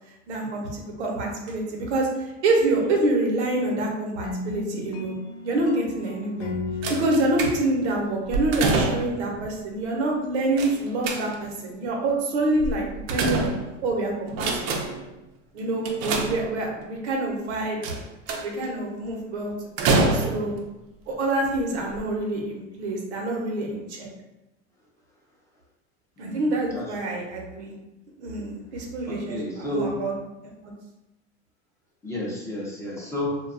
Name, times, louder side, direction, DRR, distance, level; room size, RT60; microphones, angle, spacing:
voice 1, 0.3-5.2 5.4-6.5 6.9-13.5 13.8-14.8 15.5-17.8 18.4-20.5 21.1-24.1 26.2-27.7 28.2-30.1 30.6-30.7, right 2 dB, 85° right, 0 dB, 0.8 m, -26 dB
sound 1, 4.2-9.1, left 4 dB, 75° left, 0.5 m, -36 dB
sound 2, 6.8-7.9 8.3-9.3 10.6-11.6 12.6-13.9 14.3-15.1 15.8-16.8 17.8-18.7 19.8-20.6 21.4-21.6 21.9-22.0, right 3 dB, 60° right, 0.5 m, -26 dB
voice 2, 29.3-29.9 32.0-33.4, equal, 10° left, -6 dB, 0.5 m, -30 dB
2.5 x 2.2 x 2.5 m, 0.95 s
supercardioid pair, 125°, 33 cm